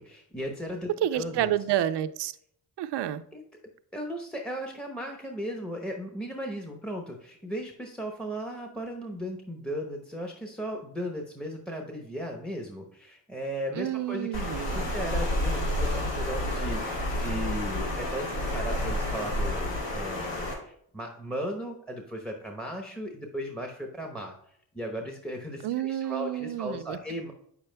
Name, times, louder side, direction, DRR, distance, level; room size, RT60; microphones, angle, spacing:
voice 1, 0.0-1.5 3.3-3.4 3.9-14.5 14.7-24.3 24.7-27.3, equal, ahead, 0.9 m, -36 dB
voice 2, 1.0-2.4 2.8-3.2 13.7-14.8 25.6-27.0, right 12 dB, 70° right, 0.6 m, -29 dB
Water, 14.3-20.5, left 1 dB, 85° left, 2.2 m, -30 dB
8.6 x 6.9 x 2.2 m
cardioid pair, 70°, 44 cm